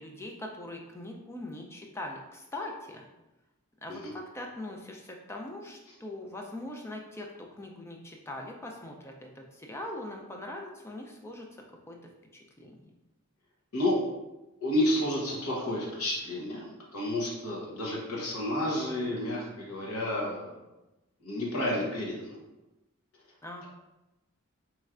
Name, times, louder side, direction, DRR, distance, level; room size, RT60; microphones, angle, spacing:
voice 1, 0.0-3.0 3.8-11.5 11.9-12.0 12.6-12.7 23.4-23.6, left 1 dB, 10° left, 1 dB, 0.4 m, -41 dB
voice 2, 14.6-20.5 21.2-22.4, left 1 dB, 85° left, -3 dB, 1.0 m, -30 dB
4.3 x 3.1 x 2.4 m, 1.0 s
head